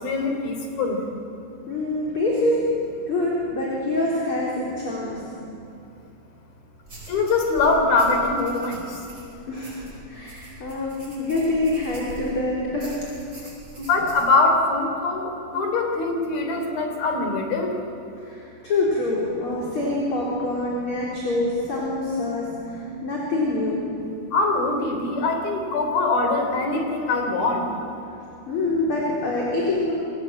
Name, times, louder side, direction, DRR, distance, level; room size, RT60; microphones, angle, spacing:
voice 1, 0.0-1.0 7.1-8.7 13.8-17.7 24.3-27.6, left 3 dB, 70° left, 4 dB, 5.3 m, -22 dB
voice 2, 1.7-2.6 3.1-5.2 9.5-13.0 18.2-23.8 28.5-29.9, left 2 dB, 35° left, -4 dB, 4.6 m, -25 dB
sound 1, 6.8-12.4 12.8-14.3, right 1 dB, 20° right, 8.4 m, -43 dB
29.0 x 22.5 x 8.9 m, 2.8 s
omnidirectional pair, 4.4 m